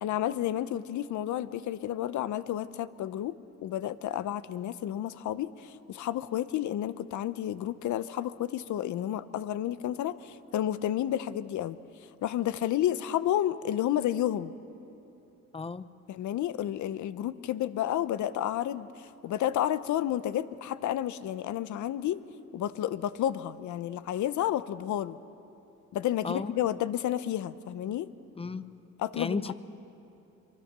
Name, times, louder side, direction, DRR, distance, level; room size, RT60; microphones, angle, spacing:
voice 1, 0.0-3.3 3.6-11.8 12.2-14.5 16.1-18.9 19.2-22.2 22.5-25.2 25.9-28.1 29.0-29.5, left 12 dB, 75° left, 14 dB, 0.8 m, -31 dB
voice 2, 15.5-15.8 26.2-26.5 28.3-28.6 29.1-29.5, left 4 dB, 20° left, 14 dB, 0.7 m, -33 dB
24.5 x 23.5 x 6.8 m, 2.9 s
cardioid pair, 90°, 30 cm